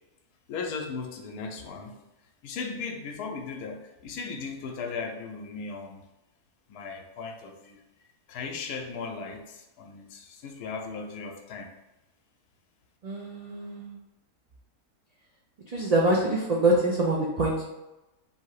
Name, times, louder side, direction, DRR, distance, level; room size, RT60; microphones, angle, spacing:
voice 1, 0.5-2.0 2.4-6.0 6.7-7.8 8.3-11.7, left 4 dB, 85° left, 2 dB, 1.2 m, -37 dB
voice 2, 13.0-14.0 15.7-17.6, right 2 dB, 85° right, -4 dB, 0.3 m, -25 dB
3.5 x 2.8 x 4.7 m, 0.99 s
omnidirectional pair, 1.6 m